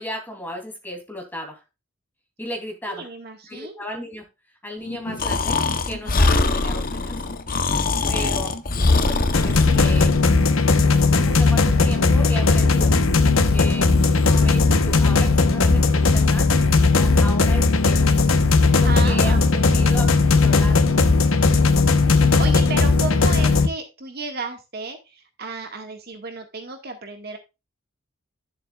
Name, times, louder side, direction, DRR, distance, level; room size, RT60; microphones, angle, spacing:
voice 1, 0.0-1.6 2.4-3.1 3.4-4.2 4.6-5.6 5.9-7.2 8.1-8.5 9.0-10.1 11.1-13.0 13.5-13.9 14.2-16.5 16.8-18.3 18.8-19.3 19.6-21.0, equal, 10° left, 2 dB, 2.9 m, -35 dB
voice 2, 2.9-3.8 8.0-8.4 18.8-19.8 21.4-21.8 22.2-27.4, right 3 dB, 50° right, 5 dB, 1.7 m, -34 dB
sound 1, 4.8-10.2, left 1 dB, 65° left, 2.8 m, -39 dB
Breathing, 5.2-10.3, left 3 dB, 45° left, 0.8 m, -22 dB
sound 2, 9.3-23.7, left 3 dB, 80° left, 1.0 m, -17 dB
12.0 x 7.3 x 2.4 m, 0.26 s
head